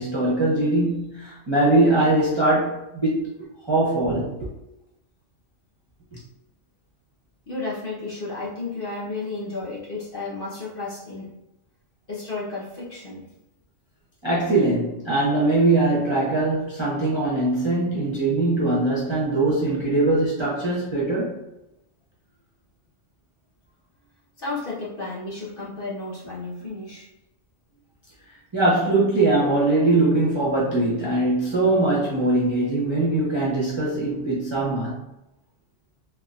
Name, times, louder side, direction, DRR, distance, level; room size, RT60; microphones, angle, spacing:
voice 1, 0.0-3.3 3.7-4.5 14.2-21.3 28.5-35.0, right 2 dB, 30° right, -6 dB, 0.6 m, -21 dB
voice 2, 7.5-11.3 12.1-13.3 24.4-27.1, left 3 dB, 45° left, -7 dB, 1.1 m, -32 dB
3.7 x 2.9 x 2.4 m, 0.90 s
omnidirectional pair, 1.4 m